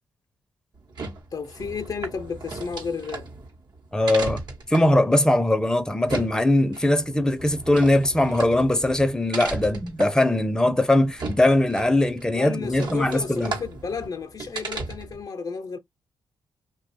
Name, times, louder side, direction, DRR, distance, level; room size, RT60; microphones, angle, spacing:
sound 1, 0.8-15.2, right 3 dB, 65° right, 1.0 m, -36 dB
voice 1, 1.3-3.3 12.3-15.8, left 5 dB, 50° left, 0.6 m, -32 dB
voice 2, 3.9-4.4 4.7-13.5, left 1 dB, 10° left, 0.6 m, -21 dB
2.7 x 2.3 x 2.6 m
cardioid pair, 60°, 8 cm